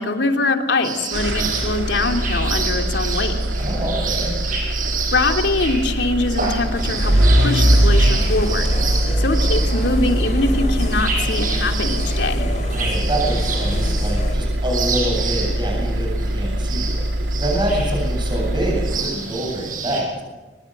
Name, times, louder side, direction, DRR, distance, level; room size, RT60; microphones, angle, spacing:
voice 1, 0.0-3.3 5.1-8.7 9.2-12.5, left 2 dB, 75° left, 4 dB, 2.9 m, -23 dB
sound 1, 0.8-20.0, right 5 dB, 50° right, 7.2 m, -29 dB
sound 2, 1.1-19.4, equal, 80° right, 2.4 m, -22 dB
voice 2, 3.6-4.3 12.7-16.1 16.3-17.0 17.4-20.1, right 1 dB, 25° right, 0 dB, 8.0 m, -26 dB
sound 3, 6.7-14.3, left 1 dB, 45° left, 4.4 m, -28 dB
23.5 x 21.0 x 7.9 m, 1.2 s
head